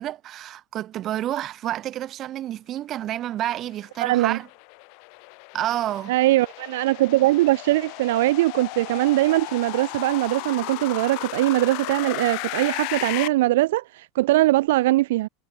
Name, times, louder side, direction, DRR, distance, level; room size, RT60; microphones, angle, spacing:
voice 1, 0.0-4.5 5.5-6.1, right 12 dB, 30° right, 3.7 m, -29 dB
sound 1, 3.7-13.3, left 40 dB or more, 50° left, 4.5 m, -35 dB
voice 2, 4.0-4.4 6.1-15.3, right 17 dB, 75° right, 2.4 m, -21 dB
supercardioid pair, 175°, 0 cm